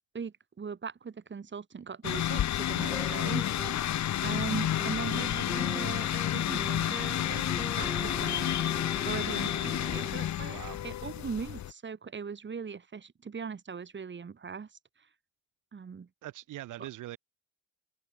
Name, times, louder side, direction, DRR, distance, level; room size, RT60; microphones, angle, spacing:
voice 1, 0.1-3.5 4.2-7.4 7.8-8.5 9.1-14.7 15.7-16.1 16.8-16.9, right 6 dB, 40° right, 4.2 m, -39 dB
sound 1, 2.0-11.7, left 11 dB, 65° left, 1.8 m, -30 dB
sound 2, 2.8-4.0 4.2-10.1, right 1 dB, 5° right, 1.5 m, -42 dB
voice 2, 10.5-10.8 16.2-17.2, right 15 dB, 85° right, 4.0 m, -42 dB
open air
cardioid pair, 90°, 30 cm